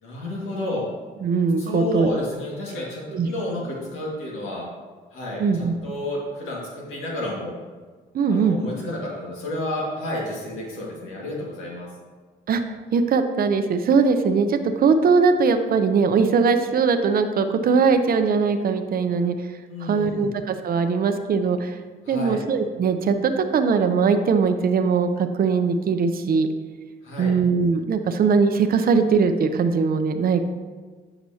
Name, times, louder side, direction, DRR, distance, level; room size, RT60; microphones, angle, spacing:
voice 1, 0.0-0.8 1.6-4.7 5.1-7.6 8.2-11.9 19.7-20.3 22.0-22.4 27.0-27.3, left 1 dB, 85° left, -3 dB, 1.9 m, -30 dB
voice 2, 1.2-2.1 3.1-3.3 5.4-5.7 8.1-8.6 12.5-12.6 12.9-19.3 19.8-21.8 22.1-26.5 27.2-30.5, right 5 dB, 50° right, 8 dB, 0.6 m, -20 dB
7.8 x 5.8 x 2.8 m, 1.4 s
cardioid pair, 90°, 20 cm